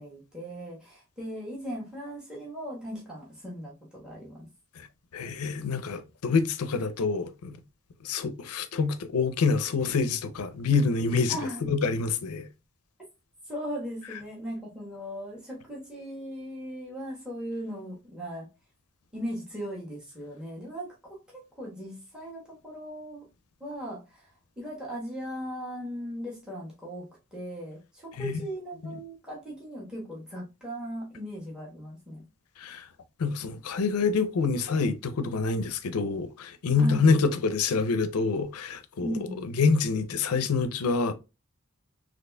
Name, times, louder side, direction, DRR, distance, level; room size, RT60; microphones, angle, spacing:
voice 1, 0.0-4.5 11.3-11.6 13.4-18.5 19.1-23.3 23.6-24.3 24.6-32.2 36.7-37.2 39.0-39.5, equal, 5° right, 1.2 m, -38 dB
voice 2, 5.1-7.6 8.0-12.5 28.2-28.3 28.8-28.9 32.6-32.9 33.2-39.1 39.6-41.1, left 4 dB, 90° left, 0.5 m, -26 dB
4.1 x 3.0 x 2.2 m
head